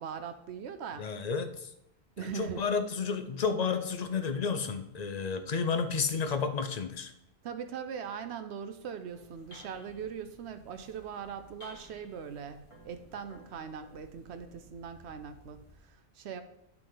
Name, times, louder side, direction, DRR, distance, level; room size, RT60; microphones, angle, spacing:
voice 1, 0.0-1.1 2.2-2.6 7.4-16.4, right 7 dB, 90° right, 9 dB, 1.0 m, -41 dB
voice 2, 1.0-1.7 2.3-7.1, left 5 dB, 45° left, 9 dB, 0.7 m, -31 dB
sound 1, 8.9-15.9, equal, 30° left, 2.1 m, -56 dB
10.5 x 5.8 x 3.9 m, 0.80 s
omnidirectional pair, 1.1 m